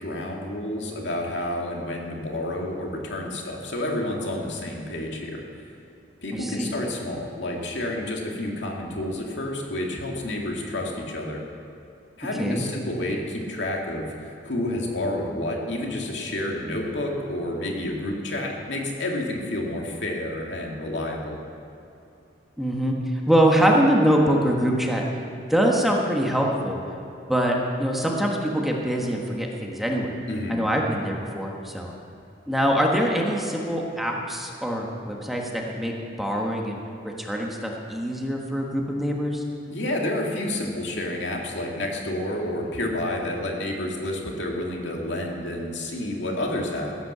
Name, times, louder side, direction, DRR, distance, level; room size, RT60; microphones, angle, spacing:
voice 1, 0.0-5.4 6.2-11.4 12.2-21.4 30.3-30.6 39.7-46.9, left 1 dB, 75° left, 0 dB, 2.3 m, -29 dB
voice 2, 6.3-6.7 12.3-12.6 22.6-22.9 23.3-25.0 25.5-26.8 27.3-30.1 30.5-31.9 32.5-36.8 37.0-39.4, equal, ahead, -1 dB, 1.4 m, -24 dB
15.5 x 9.4 x 6.8 m, 2.7 s
head